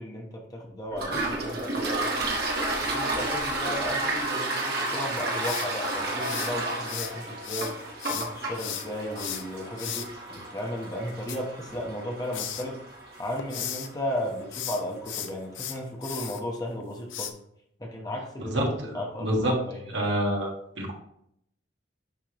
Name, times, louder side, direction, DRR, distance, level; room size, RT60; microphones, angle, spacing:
voice 1, 0.0-2.3 2.8-12.8 13.2-17.3 17.8-19.9, equal, 20° left, 0 dB, 1.0 m, -35 dB
Toilet flush, 0.9-14.3, right 2 dB, 50° right, 1.4 m, -32 dB
sound 1, 5.4-7.1 7.4-10.1 11.1-12.0 12.3-12.7 13.1-13.9 14.4-16.4 17.1-17.3, left 9 dB, 80° left, 0.7 m, -35 dB
voice 2, 18.4-19.5 19.9-20.9, equal, 70° right, -1 dB, 1.6 m, -28 dB
10.5 x 3.6 x 3.0 m, 0.74 s
head